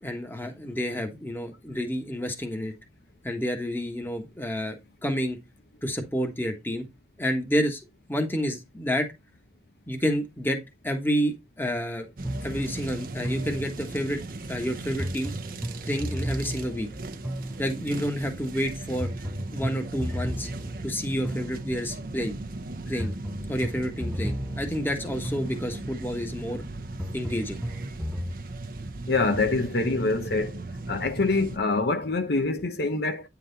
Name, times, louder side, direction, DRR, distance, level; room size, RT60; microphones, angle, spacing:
voice 1, 0.0-2.7 3.2-4.7 5.0-5.4 5.8-6.8 7.2-7.8 8.1-9.1 9.9-10.6 10.8-12.1 12.4-14.2 14.5-15.3 15.8-16.9 17.6-19.1 19.5-20.5 20.8-22.3 22.9-23.1 23.5-26.6 27.1-27.6, equal, 10° left, 1.3 m, -29 dB
sound 1, 12.2-14.1 15.0-18.1 19.0-22.1 23.0-26.0 27.0-28.4, equal, 5° right, 0.5 m, -35 dB
sound 2, 12.2-31.6, right 2 dB, 55° right, 0.8 m, -37 dB
voice 2, 29.1-33.3, left 3 dB, 65° left, 0.8 m, -26 dB
9.2 x 4.1 x 4.0 m
head